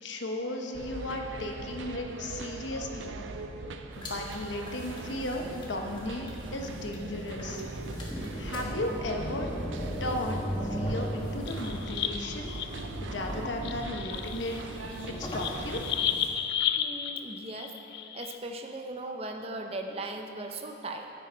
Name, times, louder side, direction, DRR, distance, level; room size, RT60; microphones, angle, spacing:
voice 1, 0.0-3.2 4.0-7.6 8.4-9.5 10.0-14.6 15.1-15.8, left 1 dB, 75° left, 2 dB, 1.0 m, -35 dB
sound 1, 0.7-15.9, right 3 dB, 85° right, 0.5 m, -42 dB
sound 2, 3.9-16.3, equal, 25° left, 1.2 m, -38 dB
sound 3, 11.3-12.9 13.4-18.4, left 9 dB, 55° left, 0.4 m, -33 dB
voice 2, 16.8-17.7 18.1-21.1, right 2 dB, 30° right, 4 dB, 0.6 m, -38 dB
10.0 x 9.1 x 4.6 m, 2.9 s
head